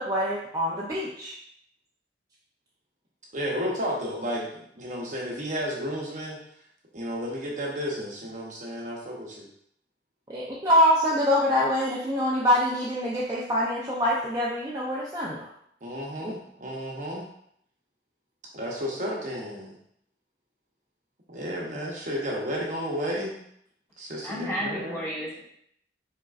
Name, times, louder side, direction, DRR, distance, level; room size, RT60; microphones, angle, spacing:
voice 1, 0.0-1.3 10.3-15.5 16.2-16.3, equal, 20° right, -6 dB, 0.6 m, -25 dB
voice 2, 3.3-6.4 6.9-9.5 15.8-17.2 18.5-19.8 21.3-23.4 24.0-25.0, equal, 45° right, -2 dB, 0.9 m, -32 dB
voice 3, 24.2-25.4, equal, 15° left, -9 dB, 1.9 m, -32 dB
4.9 x 4.3 x 2.4 m, 0.68 s
head